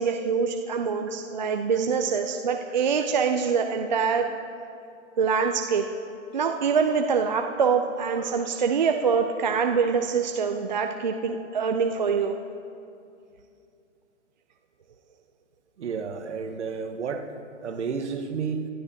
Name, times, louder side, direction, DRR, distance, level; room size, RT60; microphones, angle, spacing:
voice 1, 0.0-4.3 5.2-5.8 6.3-12.4, right 6 dB, 35° right, 4 dB, 0.5 m, -24 dB
voice 2, 15.8-17.3 17.6-18.7, right 5 dB, 65° right, 4 dB, 1.4 m, -31 dB
24.5 x 12.5 x 2.9 m, 2.5 s
hypercardioid pair, 165°, 38 cm